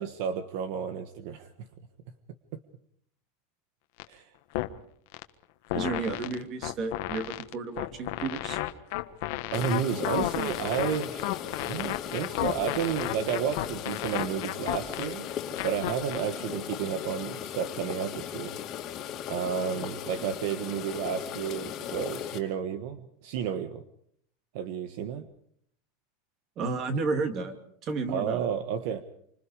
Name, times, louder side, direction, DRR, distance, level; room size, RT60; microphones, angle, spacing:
voice 1, 0.0-1.7 4.1-4.3 9.5-15.3 15.6-18.5 19.3-23.8 24.5-25.3 28.1-29.0, right 8 dB, 55° right, 10 dB, 1.4 m, -32 dB
sound 1, 4.0-4.1 4.5-4.7 5.1-5.2 5.7-16.2, left 18 dB, 55° left, 1.4 m, -32 dB
voice 2, 5.7-8.6 26.6-27.5 27.8-28.5, right 4 dB, 30° right, 8 dB, 2.7 m, -32 dB
sound 2, 9.5-22.4, left 10 dB, 30° left, 2.6 m, -37 dB
27.5 x 25.5 x 5.0 m, 0.66 s
supercardioid pair, 170°, 0 cm